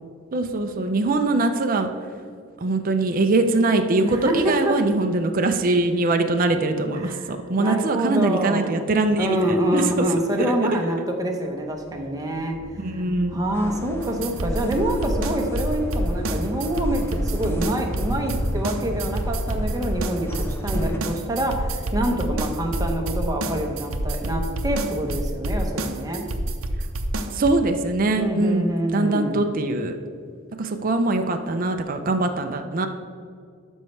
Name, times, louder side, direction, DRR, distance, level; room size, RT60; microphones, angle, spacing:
voice 1, 0.3-1.9 2.6-10.1 12.8-13.4 27.3-30.0 30.6-32.9, right 2 dB, 40° right, 6 dB, 0.5 m, -22 dB
voice 2, 4.0-4.8 6.9-7.3 7.6-8.8 9.2-13.0 13.3-26.3 28.2-29.5, right 1 dB, 15° right, 2 dB, 0.9 m, -26 dB
sound 1, 11.6-23.8, left 2 dB, 75° left, 0.5 m, -38 dB
sound 2, 13.5-21.0, equal, 10° left, 0.6 m, -34 dB
sound 3, 14.0-27.5, right 1 dB, 80° right, 0.7 m, -28 dB
12.5 x 5.4 x 3.2 m, 2.3 s
head